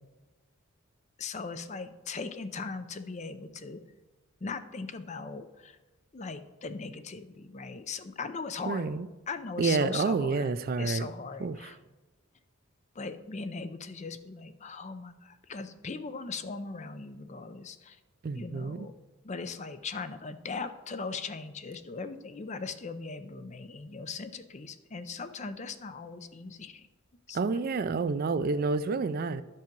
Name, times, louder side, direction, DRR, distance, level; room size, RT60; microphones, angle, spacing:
voice 1, 1.2-3.8 4.4-5.8 6.1-8.9 9.3-10.5 10.8-11.8 13.0-18.0 18.3-18.9 19.2-26.9 27.3-27.6, left 4 dB, 35° left, 10 dB, 0.5 m, -39 dB
voice 2, 8.7-9.1 9.6-11.1 11.4-11.7 18.2-18.9 27.3-29.4, right 4 dB, 45° right, 14 dB, 0.3 m, -29 dB
11.5 x 5.5 x 5.2 m, 1.1 s
head